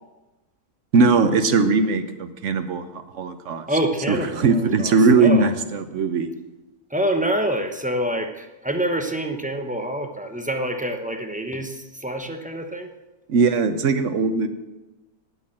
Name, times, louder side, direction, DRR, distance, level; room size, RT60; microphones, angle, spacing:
voice 1, 0.9-3.6 4.1-6.3 13.3-14.5, right 4 dB, 55° right, 9 dB, 1.1 m, -19 dB
voice 2, 3.7-5.5 6.9-12.9, right 1 dB, 5° right, 4 dB, 0.6 m, -26 dB
10.0 x 8.1 x 7.5 m, 1.1 s
omnidirectional pair, 1.6 m